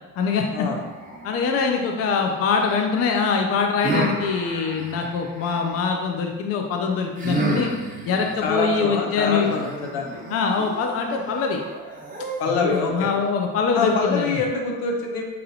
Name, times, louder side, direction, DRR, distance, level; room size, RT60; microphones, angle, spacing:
voice 1, 0.2-0.7 1.2-7.7 8.1-9.5 10.3-11.6 12.5-14.4, left 5 dB, 30° left, 3 dB, 0.4 m, -23 dB
sound 1, 0.6-2.8 3.8-5.9 7.2-12.8, right 2 dB, 15° right, 1.0 m, -31 dB
voice 2, 8.4-10.3 12.4-13.1 13.7-15.2, left 3 dB, 65° left, 1 dB, 0.9 m, -25 dB
5.3 x 2.5 x 2.7 m, 1.2 s
hypercardioid pair, 65°, 48 cm